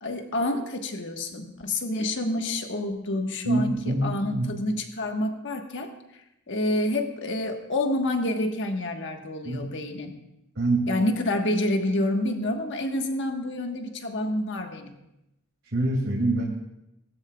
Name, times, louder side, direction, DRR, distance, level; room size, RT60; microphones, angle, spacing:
voice 1, 0.0-10.1 10.9-15.0, left 1 dB, 55° left, 4 dB, 1.3 m, -28 dB
voice 2, 3.4-4.5 9.4-9.7 10.6-10.9 15.7-16.4, right 2 dB, 65° right, -5 dB, 2.4 m, -25 dB
18.5 x 12.5 x 2.3 m, 0.88 s
head